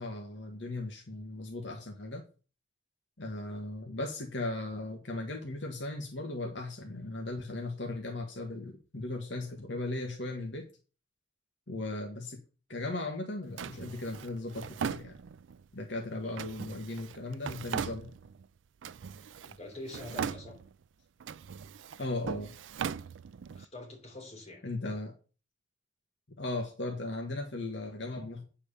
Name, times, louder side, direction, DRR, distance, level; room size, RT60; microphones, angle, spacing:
voice 1, 0.0-2.2 3.2-10.7 11.7-12.4 12.7-15.2 15.7-18.1 22.0-22.5 24.6-25.1 26.4-28.4, left 2 dB, 70° left, 2 dB, 1.5 m, -37 dB
Drawer open or close, 13.6-15.6 16.4-18.5 18.8-19.6 19.9-20.8 21.2-23.6, right 7 dB, 80° right, 0.4 m, -39 dB
voice 2, 19.4-20.6 23.5-24.6, left 1 dB, 35° left, 0 dB, 3.7 m, -45 dB
8.8 x 4.6 x 6.7 m, 0.36 s
head